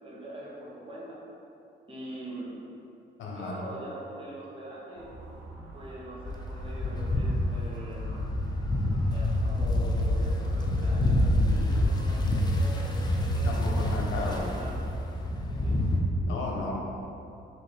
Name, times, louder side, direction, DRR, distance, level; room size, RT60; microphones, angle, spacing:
voice 1, 0.0-1.2 1.9-2.5 3.3-5.1 5.7-8.2 9.1-13.8 14.1-14.7 15.5-15.8, right 1 dB, 25° right, -6 dB, 0.9 m, -42 dB
voice 2, 3.2-3.5 13.4-14.5 16.2-16.7, left 2 dB, 70° left, -2 dB, 0.7 m, -34 dB
Motor vehicle (road) / Siren, 5.0-10.6, right 2 dB, 70° right, 0.6 m, -47 dB
sound 1, 6.3-16.0, left 1 dB, 20° left, 0.4 m, -27 dB
3.8 x 2.6 x 3.2 m, 2.7 s
cardioid pair, 90°, 20 cm